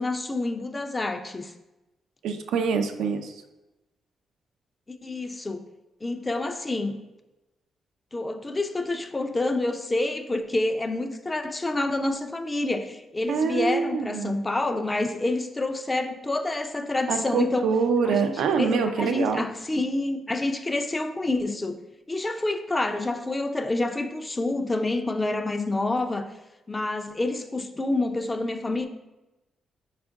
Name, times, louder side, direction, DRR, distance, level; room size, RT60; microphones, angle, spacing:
voice 1, 0.0-1.5 4.9-5.6 6.0-7.0 8.1-17.7 18.1-21.8 22.1-26.3 26.7-28.9, left 2 dB, 25° left, 7 dB, 0.4 m, -28 dB
voice 2, 2.2-3.3 13.3-14.4 17.1-19.4, right 5 dB, 80° right, 7 dB, 0.3 m, -25 dB
4.3 x 2.4 x 3.5 m, 1.0 s
supercardioid pair, 65°, 0 cm